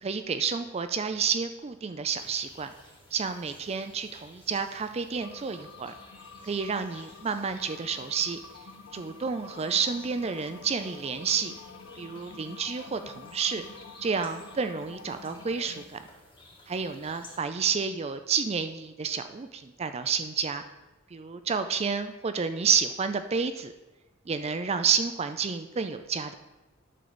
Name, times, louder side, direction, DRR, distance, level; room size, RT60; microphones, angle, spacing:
voice 1, 0.0-2.7 3.1-5.9 6.4-8.4 8.9-11.5 12.0-13.6 14.0-16.0 16.7-20.6 21.1-23.7 24.3-26.3, right 6 dB, 30° right, 9 dB, 0.4 m, -30 dB
sound 1, 2.1-17.4, left 2 dB, 25° left, 2.2 m, -54 dB
sound 2, 5.2-15.8, left 5 dB, 75° left, 0.6 m, -48 dB
11.0 x 3.9 x 6.8 m, 1.1 s
head